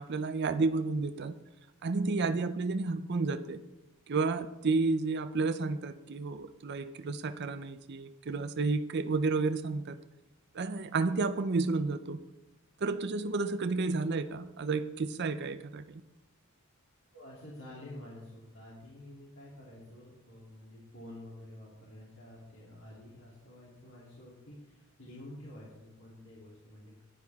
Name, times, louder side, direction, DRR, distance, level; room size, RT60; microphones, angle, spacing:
voice 1, 0.0-1.4 1.8-3.6 4.1-10.0 10.5-12.2 12.8-16.0, right 3 dB, 50° right, 9 dB, 0.5 m, -31 dB
voice 2, 17.1-27.0, left 1 dB, 60° left, -5 dB, 3.0 m, -49 dB
15.0 x 10.5 x 3.6 m, 0.99 s
head